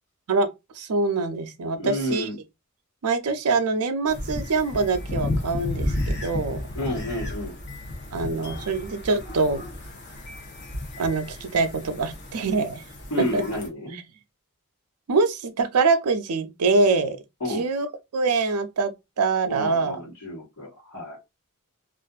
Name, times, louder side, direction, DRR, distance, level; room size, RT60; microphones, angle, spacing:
voice 1, 0.8-2.3 3.0-6.7 8.1-9.6 11.0-12.8 13.2-13.4 13.9-14.0 15.1-17.2 17.5-17.9 18.1-20.0, right 3 dB, 90° right, 0.5 m, -24 dB
voice 2, 1.7-2.4 6.7-7.5 13.1-14.0 17.4-17.6 19.5-21.2, left 1 dB, 80° left, 1.3 m, -30 dB
sound 1, 4.1-13.7, left 1 dB, 50° left, 0.8 m, -33 dB
2.5 x 2.5 x 2.3 m
head